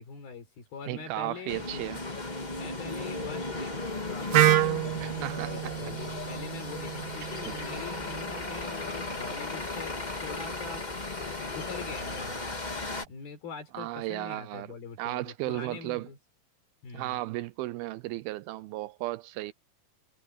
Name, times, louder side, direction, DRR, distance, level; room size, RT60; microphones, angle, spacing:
voice 1, 0.0-1.8 2.5-11.1 11.6-12.6 13.1-16.2 16.8-17.2, left 5 dB, 75° left, 6.1 m, -43 dB
voice 2, 0.9-2.0 5.0-5.9 7.2-7.6 13.7-14.7 15.0-16.1 16.9-19.5, right 17 dB, 85° right, 2.5 m, -35 dB
sound 1, 1.5-13.0, left 2 dB, 25° left, 0.9 m, -36 dB
Wind instrument woodwind instrument, 4.3-8.2, right 14 dB, 70° right, 2.8 m, -28 dB
omnidirectional pair, 4.4 m